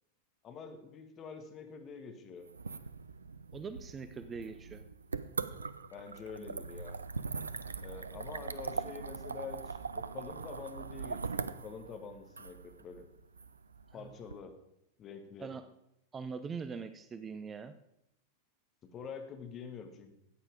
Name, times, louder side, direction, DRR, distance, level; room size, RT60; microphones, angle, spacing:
voice 1, 0.4-2.5 5.9-7.0 7.8-13.1 13.9-14.5 15.0-15.5 18.8-20.1, left 5 dB, 30° left, 6 dB, 1.7 m, -46 dB
sound 1, 2.5-14.3, right 4 dB, 75° right, 0.5 m, -41 dB
voice 2, 3.5-4.8 14.0-14.1 15.4-15.6 16.1-17.7, right 5 dB, 20° right, 11 dB, 0.6 m, -42 dB
14.0 x 8.8 x 5.1 m, 0.80 s
figure-of-eight pair, 90°, 0 cm